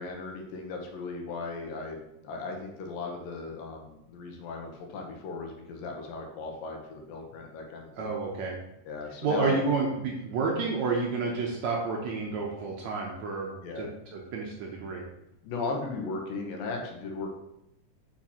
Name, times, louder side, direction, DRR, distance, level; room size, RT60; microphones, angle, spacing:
voice 1, 0.0-8.1 8.8-9.6 13.6-13.9 15.4-17.4, left 3 dB, 85° left, 2 dB, 2.7 m, -37 dB
voice 2, 8.0-8.6 9.2-13.5 13.8-15.0, right 4 dB, 70° right, -1 dB, 1.8 m, -30 dB
7.2 x 5.8 x 2.9 m, 0.82 s
omnidirectional pair, 4.0 m